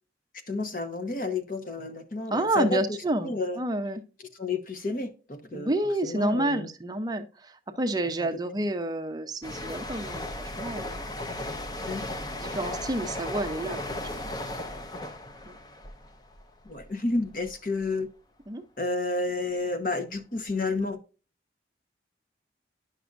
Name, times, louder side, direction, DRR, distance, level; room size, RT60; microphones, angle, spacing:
voice 1, 0.5-3.0 3.2-3.6 4.4-5.7 6.0-6.7 8.2-8.3 11.9-12.1 16.6-18.1 18.8-21.0, left 3 dB, 50° left, 1.0 m, -30 dB
voice 2, 2.3-4.0 5.5-11.1 12.4-14.3 15.5-15.6 18.5-18.6, right 1 dB, 20° right, 0.6 m, -29 dB
sound 1, 9.4-16.9 17.2-17.5, left 1 dB, 20° left, 0.6 m, -36 dB
10.5 x 6.0 x 2.5 m
head